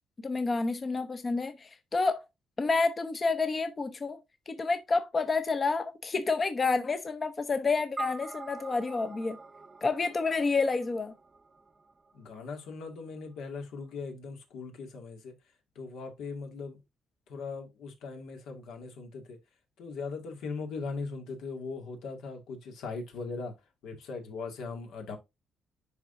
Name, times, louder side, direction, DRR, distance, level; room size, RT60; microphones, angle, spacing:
voice 1, 0.2-2.3 2.6-4.2 4.5-9.4 9.8-11.1, left 4 dB, 30° left, 0.7 m, -29 dB
sound 1, 8.0-12.5, right 3 dB, 20° right, 0.8 m, -44 dB
voice 2, 12.1-15.3 15.8-16.8 17.3-19.4 19.8-23.5 23.8-25.2, left 4 dB, 85° left, 2.1 m, -39 dB
10.5 x 3.8 x 2.6 m
cardioid pair, 125°, 0 cm